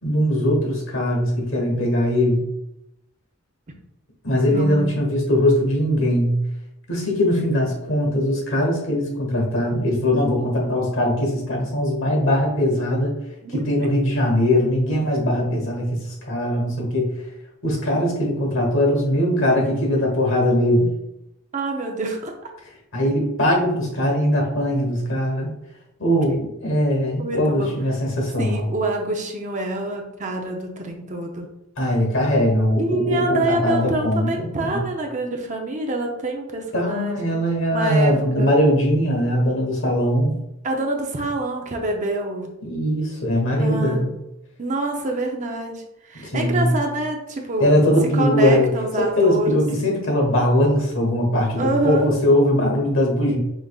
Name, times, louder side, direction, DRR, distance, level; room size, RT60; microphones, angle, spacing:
voice 1, 0.0-2.5 4.2-6.4 6.9-13.1 13.5-17.2 17.6-21.0 22.9-25.5 26.0-28.7 31.8-34.9 36.7-40.4 42.6-44.1 46.1-46.7 47.6-53.4, left 1 dB, 65° left, 1 dB, 1.3 m, -20 dB
voice 2, 4.5-5.0 13.4-13.6 21.5-22.5 27.2-27.8 28.4-31.5 32.8-37.3 37.7-38.5 40.6-42.5 43.6-44.1 44.6-45.8 46.1-47.7 48.1-49.6 51.6-52.1, right 2 dB, 35° right, 2 dB, 0.6 m, -26 dB
5.1 x 3.6 x 2.3 m, 0.87 s
head